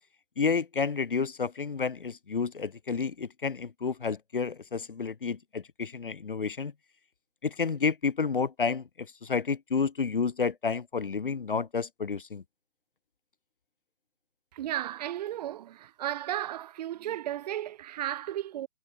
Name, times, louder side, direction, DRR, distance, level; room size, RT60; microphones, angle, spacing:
voice 1, 0.4-6.7 7.4-12.4, left 5 dB, 40° left, 0.5 m, -30 dB
voice 2, 14.5-18.7, right 12 dB, 30° right, 3.9 m, -34 dB
figure-of-eight pair, 140°, 42 cm